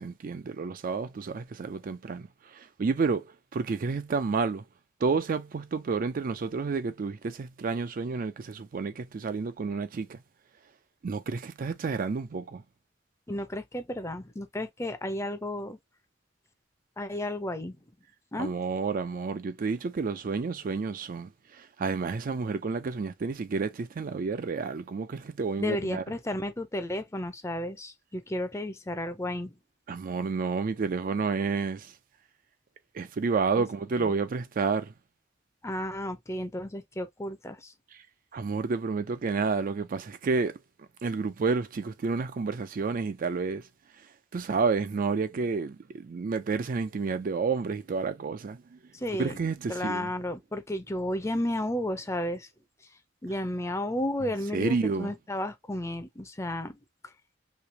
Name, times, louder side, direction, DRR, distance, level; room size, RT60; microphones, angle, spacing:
voice 1, 0.0-4.6 5.0-10.2 11.0-12.6 18.4-26.0 29.9-31.9 32.9-34.9 37.9-38.0 38.3-40.6 41.0-43.7 44.3-48.8 49.2-50.1 54.5-55.1, right 4 dB, 50° right, 0.4 m, -30 dB
voice 2, 13.3-15.8 17.0-17.8 18.3-18.5 25.6-29.6 33.5-33.6 34.0-34.1 35.6-37.7 48.9-49.4 49.7-52.5 53.2-56.8 57.0-57.1, left 1 dB, 15° left, 0.6 m, -33 dB
3.2 x 2.8 x 2.8 m
head